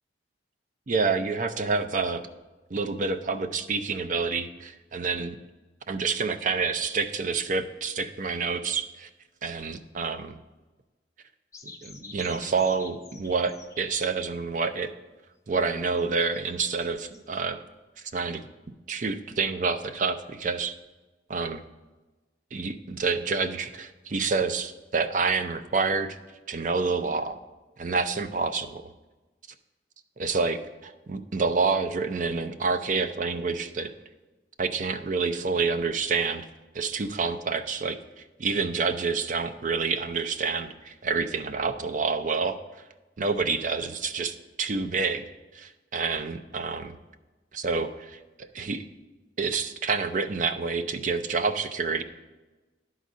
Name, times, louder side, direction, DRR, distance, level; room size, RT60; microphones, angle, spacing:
voice 1, 0.9-2.2 2.7-5.4 5.9-9.1 9.4-10.4 11.6-14.9 15.5-17.6 18.1-18.4 18.9-20.7 21.3-21.6 22.5-26.2 26.5-27.4 27.8-28.9 30.2-33.9 34.6-36.5 36.7-38.0 38.4-42.6 43.2-45.2 45.5-46.9 47.5-48.8 49.4-52.0, right 4 dB, 45° right, 10 dB, 0.5 m, -28 dB
sound 1, 11.5-14.1 16.0-17.2, left 4 dB, 20° left, 0.5 m, -48 dB
11.0 x 4.0 x 6.2 m, 1.2 s
head